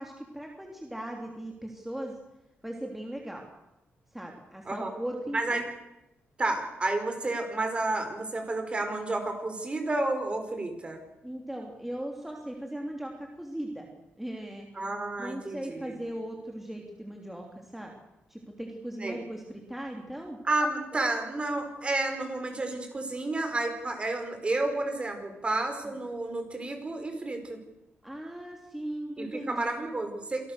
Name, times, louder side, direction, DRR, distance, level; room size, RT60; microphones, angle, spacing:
voice 1, 0.0-2.2 2.6-3.5 4.1-5.6 11.2-13.9 14.2-14.7 15.2-17.9 18.3-20.4 20.9-21.0 25.8-25.9 28.0-29.6, right 1 dB, 5° right, 1 dB, 3.0 m, -38 dB
voice 2, 6.4-11.0 14.7-16.0 19.0-19.2 20.4-27.6 29.2-30.5, right 2 dB, 25° right, 6 dB, 4.9 m, -31 dB
27.0 x 19.0 x 6.7 m, 0.94 s
cardioid pair, 120°, 4 cm